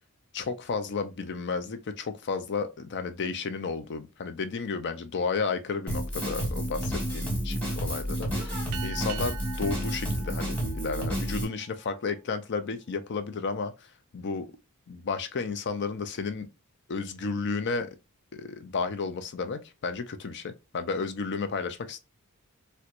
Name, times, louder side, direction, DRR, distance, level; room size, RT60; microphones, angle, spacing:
voice 1, 0.3-13.9 14.1-14.5 14.9-16.5 16.9-18.0 18.3-22.0, left 4 dB, 50° left, 0.5 m, -32 dB
Drum kit, 5.9-11.4, equal, 5° left, 1.4 m, -30 dB
sound 1, 8.7-11.7, right 11 dB, 85° right, 0.4 m, -43 dB
4.3 x 2.2 x 2.5 m
head